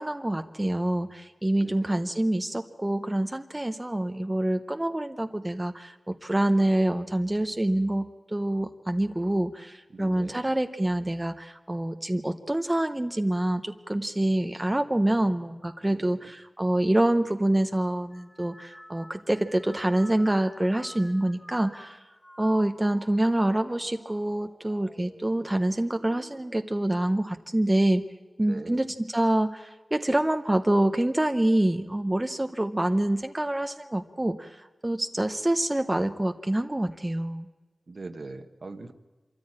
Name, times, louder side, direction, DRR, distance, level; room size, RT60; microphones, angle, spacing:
voice 1, 0.0-22.0 22.4-28.0 28.4-37.5, right 1 dB, 20° right, 8 dB, 0.7 m, -26 dB
voice 2, 1.6-2.0 9.9-10.4 15.9-16.3 28.4-28.8 37.9-38.9, right 3 dB, 60° right, 8 dB, 1.3 m, -42 dB
sound 1, 18.1-27.7 28.2-28.7 29.7-30.1, equal, 10° left, 1.5 m, -51 dB
24.5 x 14.0 x 8.8 m, 1.3 s
wide cardioid pair, 90°, 0 cm